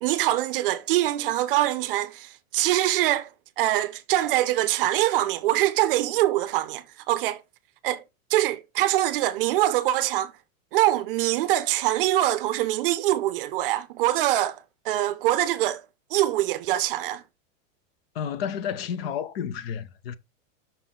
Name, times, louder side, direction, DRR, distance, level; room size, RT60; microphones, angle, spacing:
voice 1, 0.0-3.3 3.6-7.4 7.8-8.0 8.3-10.3 10.7-15.8 16.1-17.2, right 14 dB, 45° right, 0.6 m, -24 dB
voice 2, 18.1-20.2, left 8 dB, 45° left, 0.7 m, -31 dB
5.9 x 5.8 x 3.7 m
supercardioid pair, 165°, 40 cm